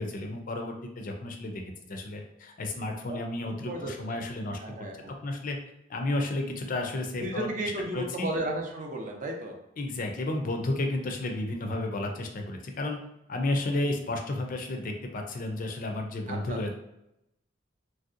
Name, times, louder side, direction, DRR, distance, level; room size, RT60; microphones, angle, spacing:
voice 1, 0.0-1.5 1.9-2.2 2.6-4.6 5.2-5.6 5.9-8.3 9.8-13.0 13.3-16.7, left 2 dB, 45° left, 3 dB, 0.4 m, -32 dB
voice 2, 3.1-4.2 4.6-5.1 7.2-9.6 16.3-16.7, right 1 dB, 45° right, 1 dB, 0.5 m, -34 dB
3.1 x 2.7 x 2.4 m, 0.83 s
head